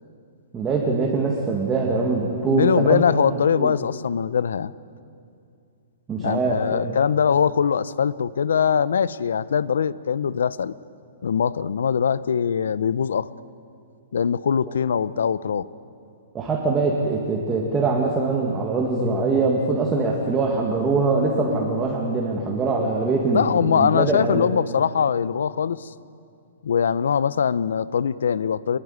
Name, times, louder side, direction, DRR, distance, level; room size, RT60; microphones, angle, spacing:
voice 1, 0.5-3.0 3.6-3.8 6.1-6.9 16.3-24.5, right 3 dB, 10° right, -1 dB, 1.9 m, -23 dB
voice 2, 2.4-4.7 6.2-10.7 11.2-13.3 14.1-15.7 23.3-25.9 26.6-28.8, left 7 dB, 80° left, 18 dB, 0.8 m, -22 dB
25.0 x 20.5 x 9.7 m, 2.5 s
hypercardioid pair, 170°, 0 cm